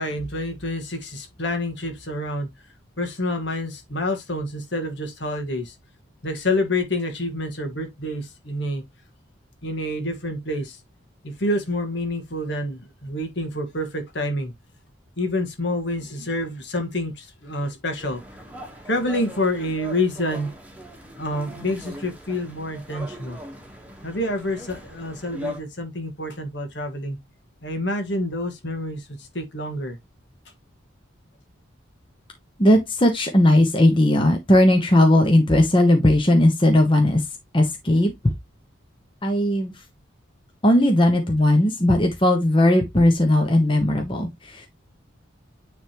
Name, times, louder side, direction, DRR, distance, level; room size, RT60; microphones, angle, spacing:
voice 1, 0.0-2.5 3.0-5.7 6.2-8.8 9.6-10.8 11.2-14.5 15.2-18.2 18.9-20.5 21.2-23.4 24.0-27.2 27.6-30.0, left 1 dB, 60° left, 1.7 m, -28 dB
sound 1, 18.0-25.6, left 1 dB, 5° right, 1.3 m, -39 dB
voice 2, 32.6-37.2 37.5-38.1 39.2-39.7 40.6-44.7, left 1 dB, 25° left, 1.1 m, -18 dB
9.7 x 3.6 x 3.0 m
head